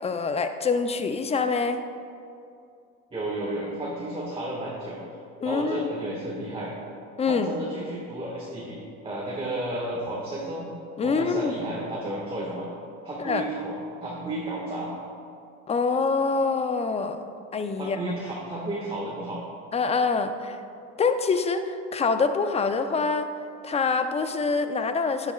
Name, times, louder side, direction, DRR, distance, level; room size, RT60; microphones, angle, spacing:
voice 1, 0.0-1.8 5.4-5.9 7.2-7.5 11.0-11.5 13.2-13.4 15.7-17.2 17.5-18.0 19.7-20.6 21.0-23.3 23.6-25.3, left 4 dB, 15° left, 9 dB, 0.4 m, -25 dB
voice 2, 3.1-5.0 5.4-6.7 7.3-8.8 9.0-10.7 11.0-12.7 13.0-14.9 17.8-19.4, right 1 dB, 15° right, -5 dB, 1.6 m, -32 dB
11.0 x 9.8 x 2.3 m, 2.5 s
supercardioid pair, 95°, 41 cm